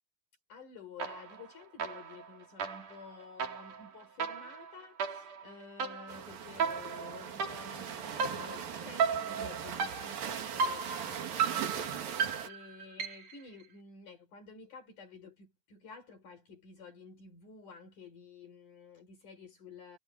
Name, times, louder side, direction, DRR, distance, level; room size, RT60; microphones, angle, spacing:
voice 1, 0.5-20.0, left 4 dB, 60° left, 6.2 m, -51 dB
sound 1, 1.0-1.5 1.8-13.4, right 6 dB, 60° right, 5.2 m, -36 dB
sound 2, 6.1-12.5, right 8 dB, 80° right, 4.2 m, -40 dB
omnidirectional pair, 4.0 m